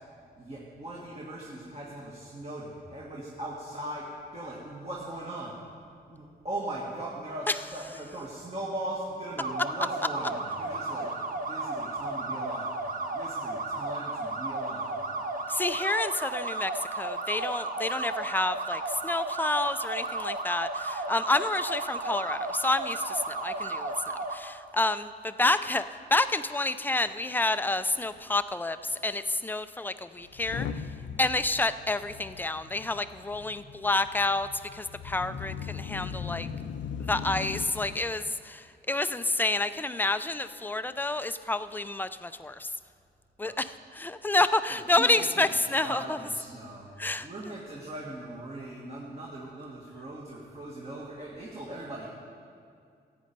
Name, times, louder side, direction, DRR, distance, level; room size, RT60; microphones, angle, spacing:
voice 1, 0.4-4.1 4.3-5.5 6.1-11.1 11.5-12.7 13.1-15.0 43.4-43.5 44.7-46.9 47.2-52.1, right 1 dB, 35° right, -4 dB, 1.8 m, -39 dB
sound 1, 9.4-24.4, right 2 dB, 50° right, 0.9 m, -34 dB
voice 2, 15.5-25.8 26.1-30.7 31.2-36.5 37.1-42.7 43.4-46.2 47.0-47.3, left 2 dB, 10° left, 12 dB, 0.4 m, -29 dB
Motor vehicle (road) / Engine starting / Accelerating revving vroom, 27.7-27.8 28.0-28.2 28.9-29.0 30.2-38.0, left 6 dB, 85° left, 0.6 m, -39 dB
15.0 x 8.9 x 5.4 m, 2.4 s
cardioid pair, 110°, 18 cm